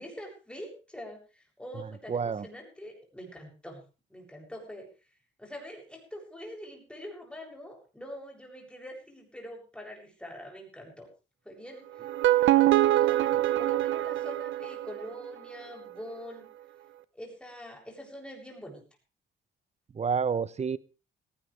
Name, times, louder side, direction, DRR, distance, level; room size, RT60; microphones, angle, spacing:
voice 1, 0.0-3.8 4.1-4.9 5.4-11.1 11.4-11.8 12.4-16.5 17.1-18.8, equal, 5° left, 0 dB, 7.7 m, -44 dB
voice 2, 1.7-2.5 19.9-20.8, right 6 dB, 35° right, 19 dB, 0.9 m, -30 dB
sound 1, 12.0-15.2, right 14 dB, 75° right, 0.8 m, -24 dB
18.0 x 18.0 x 3.4 m, 0.34 s
cardioid pair, 90°, 20 cm